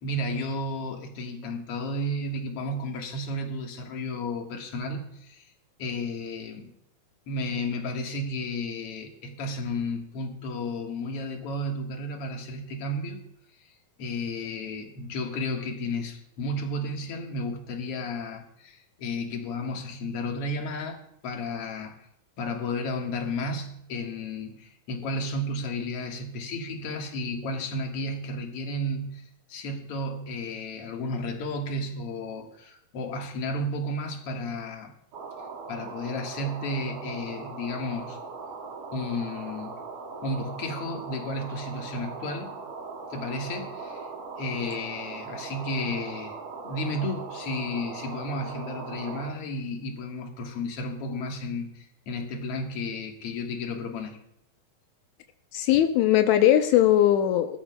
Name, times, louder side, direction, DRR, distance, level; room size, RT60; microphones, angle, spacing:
voice 1, 0.0-5.4 5.8-6.7 7.3-13.2 14.0-21.0 21.2-21.9 22.4-29.2 29.5-34.9 35.7-38.2 38.9-39.7 40.2-42.5 43.1-44.1 44.4-46.3 46.6-54.2, left 1 dB, 50° left, 2 dB, 2.0 m, -33 dB
sound 1, 35.1-49.3, right 4 dB, 70° right, 3.3 m, -39 dB
voice 2, 55.5-57.6, left 12 dB, 90° left, 7 dB, 1.6 m, -20 dB
22.0 x 13.0 x 2.3 m, 0.73 s
omnidirectional pair, 4.2 m